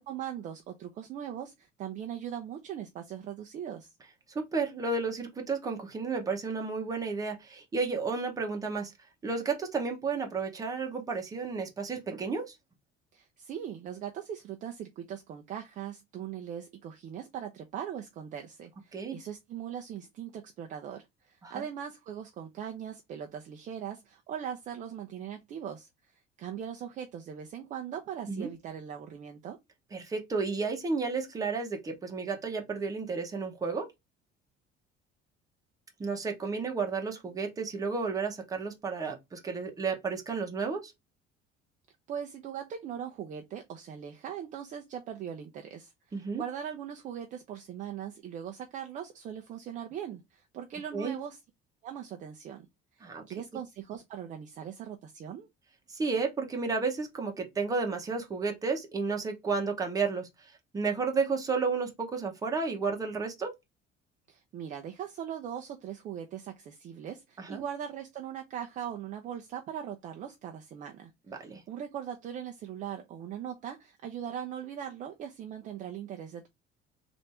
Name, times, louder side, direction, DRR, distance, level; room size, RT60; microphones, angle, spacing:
voice 1, 0.0-3.9 13.1-29.6 42.1-51.4 51.8-52.7 52.9-55.5 64.3-76.5, right 9 dB, 35° right, 0.5 m, -40 dB
voice 2, 4.3-8.9 9.2-12.5 18.9-19.2 21.4-21.6 28.3-28.5 29.9-33.9 36.0-40.9 46.1-46.4 50.9-51.2 53.0-53.2 55.9-63.5 67.4-67.6 71.3-71.6, right 4 dB, 15° right, 0.9 m, -32 dB
3.4 x 2.6 x 4.1 m
cardioid pair, 175°, 21 cm